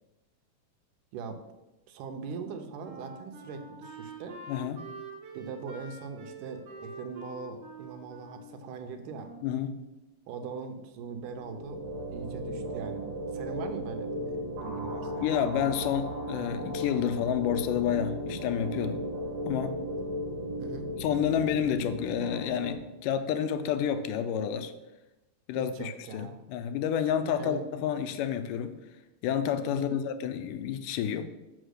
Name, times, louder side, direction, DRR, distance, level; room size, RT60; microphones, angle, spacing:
voice 1, 1.9-4.4 5.3-9.3 10.3-11.8 12.1-13.0 13.3-15.3 20.6-20.9 25.5-26.4 27.2-27.6 29.7-30.1, right 5 dB, 85° right, 6 dB, 2.4 m, -41 dB
Wind instrument woodwind instrument, 2.4-9.6, right 2 dB, 45° right, 1.5 m, -46 dB
voice 2, 4.5-4.8 9.4-9.8 15.2-19.0 19.5-19.8 21.0-24.7 25.5-28.8 29.2-31.3, left 9 dB, 85° left, 9 dB, 2.3 m, -29 dB
sound 1, 11.2-22.7, equal, 65° right, 2.6 m, -36 dB
6.3 x 5.7 x 6.5 m, 1.0 s
omnidirectional pair, 3.7 m